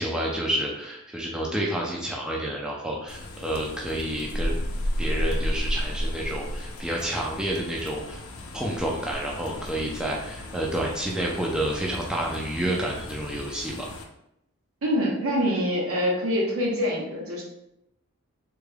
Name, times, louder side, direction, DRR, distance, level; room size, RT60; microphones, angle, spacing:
voice 1, 0.0-4.7 5.0-8.2 8.5-13.9, right 1 dB, 5° right, -3 dB, 0.4 m, -29 dB
sound 1, 3.1-14.0, equal, 70° left, 0.5 m, -33 dB
voice 2, 14.8-17.4, equal, 75° right, -3 dB, 1.0 m, -25 dB
3.5 x 2.2 x 3.3 m, 0.81 s
head